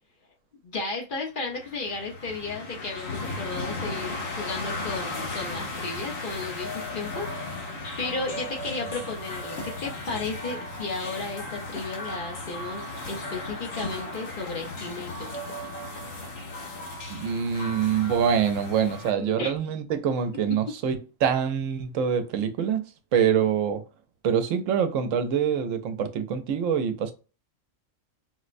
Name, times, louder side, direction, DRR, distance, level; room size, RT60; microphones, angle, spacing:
voice 1, 0.6-15.5 19.2-19.6, left 3 dB, 50° left, 0.9 m, -34 dB
sound 1, 1.5-19.1, left 2 dB, 85° left, 1.4 m, -36 dB
voice 2, 17.1-22.8 23.1-23.8 24.2-27.1, right 8 dB, 85° right, 1.0 m, -25 dB
4.4 x 2.1 x 2.5 m
omnidirectional pair, 1.3 m